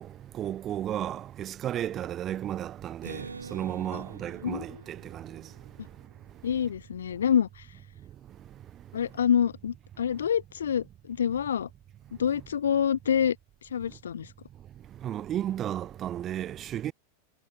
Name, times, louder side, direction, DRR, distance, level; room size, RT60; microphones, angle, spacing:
voice 1, 0.0-6.1 8.0-9.0 14.9-16.9, right 11 dB, 30° right, 0.5 m, -34 dB
Acoustic guitar, 3.0-6.7, right 4 dB, 80° right, 3.5 m, -46 dB
voice 2, 4.4-4.8 6.4-7.6 8.9-11.7 12.2-13.4 13.7-14.3, left 8 dB, 65° left, 0.3 m, -27 dB
figure-of-eight pair, 90°, 0 cm